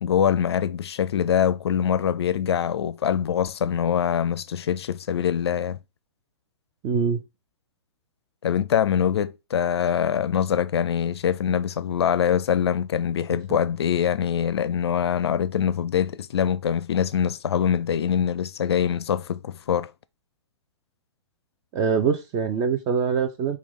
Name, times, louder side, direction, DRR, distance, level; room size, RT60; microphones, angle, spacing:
voice 1, 0.0-5.8 8.4-19.9, left 8 dB, 60° left, 0.4 m, -24 dB
voice 2, 6.8-7.2 21.7-23.6, right 6 dB, 25° right, 0.5 m, -23 dB
5.8 x 2.3 x 3.7 m
figure-of-eight pair, 115°, 15 cm